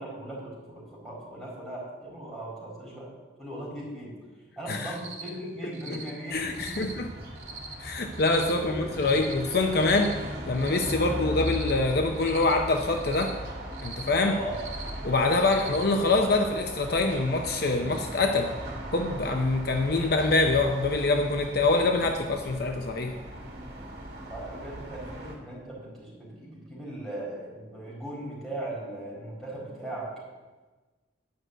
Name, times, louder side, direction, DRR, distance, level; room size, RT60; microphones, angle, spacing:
voice 1, 0.0-3.1 3.4-4.1 4.6-6.9 7.7-7.8 8.5-9.2 14.2-14.6 24.3-30.1, right 1 dB, ahead, -6 dB, 4.5 m, -38 dB
Cricket, 4.9-5.3 5.7-6.1 6.5-6.9 7.4-7.7 8.1-8.5 8.9-9.3 9.7-10.1 10.5-10.9 11.3-11.7 12.1-12.5 12.9-13.3 13.7-14.1 14.5-14.9 15.4-15.8, right 4 dB, 40° right, 1.5 m, -42 dB
voice 2, 5.6-6.0 6.3-7.1 7.8-10.2 10.5-13.4 13.8-14.4 15.0-18.5 18.9-23.2, left 3 dB, 55° left, 4 dB, 0.7 m, -25 dB
sound 1, 6.3-25.4, equal, 55° right, 2.2 m, -38 dB
10.5 x 6.2 x 7.9 m, 1.3 s
head